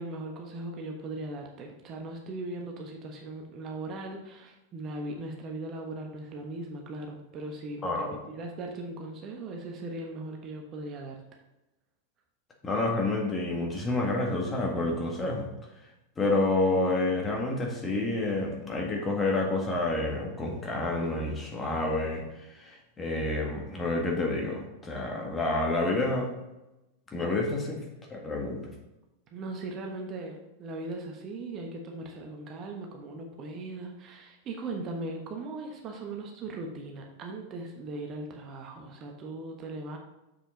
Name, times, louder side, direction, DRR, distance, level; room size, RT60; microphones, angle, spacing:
voice 1, 0.0-11.2 29.3-40.0, right 2 dB, 30° right, 2 dB, 1.2 m, -39 dB
voice 2, 7.8-8.2 12.6-15.5 16.2-22.2 22.6-26.3 27.1-27.8 28.1-28.6, left 2 dB, 20° left, 0 dB, 1.8 m, -29 dB
7.1 x 6.4 x 4.0 m, 0.97 s
figure-of-eight pair, 90°, 0 cm